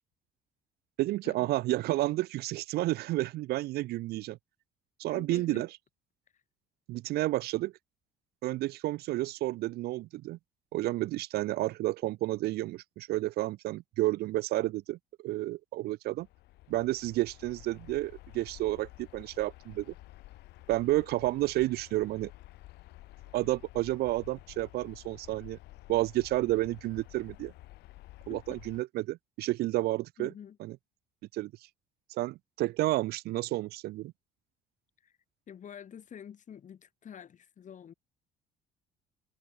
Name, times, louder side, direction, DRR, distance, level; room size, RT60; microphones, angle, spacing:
voice 1, 1.0-4.4 5.0-5.7 6.9-7.7 8.4-10.4 10.7-16.3 16.7-19.9 20.7-22.3 23.3-25.6 25.9-27.5 28.3-30.3 30.6-30.8 31.3-31.5 32.1-34.1, right 17 dB, 70° right, 0.5 m, -31 dB
voice 2, 5.1-5.7 6.3-6.4 28.3-28.6 30.2-30.6 35.0-35.1 35.5-37.9, left 8 dB, 45° left, 6.8 m, -47 dB
sound 1, 16.2-28.8, left 18 dB, 85° left, 4.6 m, -51 dB
cardioid pair, 110°, 17 cm